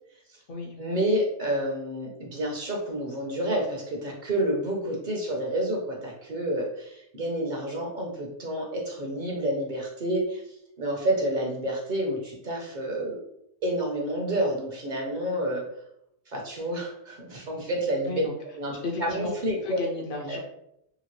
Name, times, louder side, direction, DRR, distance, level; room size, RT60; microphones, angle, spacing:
voice 1, 0.8-13.2 13.6-15.6 16.3-18.1 18.6-18.7 19.0-19.8 20.3-20.4, right 1 dB, 50° right, 0 dB, 0.7 m, -29 dB
voice 2, 18.8-19.3 19.6-20.4, left 3 dB, 60° left, 1 dB, 0.6 m, -33 dB
2.8 x 2.8 x 2.9 m, 0.79 s
omnidirectional pair, 1.2 m